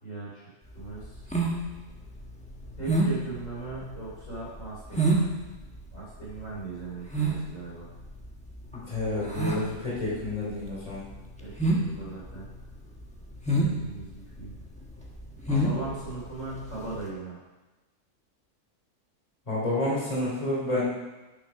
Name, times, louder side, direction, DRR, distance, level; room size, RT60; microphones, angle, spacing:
voice 1, 0.0-0.5 0.7-1.2 2.8-5.3 5.9-7.9 11.4-12.4 13.5-14.5 15.5-17.3, right 3 dB, 75° left, -6 dB, 3.7 m, -39 dB
sound 1, 0.7-17.0, right 2 dB, 5° left, 1.2 m, -29 dB
voice 2, 8.7-11.0 15.5-15.6 19.5-20.8, left 1 dB, 25° left, -6 dB, 3.0 m, -29 dB
8.4 x 6.8 x 5.9 m, 1.2 s
omnidirectional pair, 1.4 m